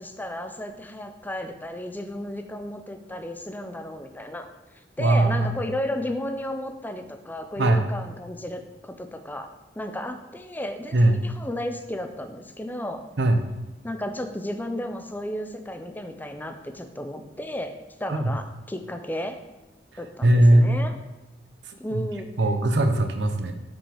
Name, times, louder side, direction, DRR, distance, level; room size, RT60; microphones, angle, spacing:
voice 1, 0.0-9.5 9.8-13.0 13.8-17.7 18.0-19.4 20.0-21.0 21.8-22.3, left 1 dB, 10° left, 7 dB, 0.5 m, -33 dB
voice 2, 5.0-5.5 7.6-7.9 10.9-11.3 13.2-13.4 18.1-18.3 20.2-20.8 21.7-22.0 22.4-23.5, right 1 dB, 85° right, 7 dB, 0.8 m, -20 dB
5.8 x 5.3 x 4.9 m, 1.0 s
head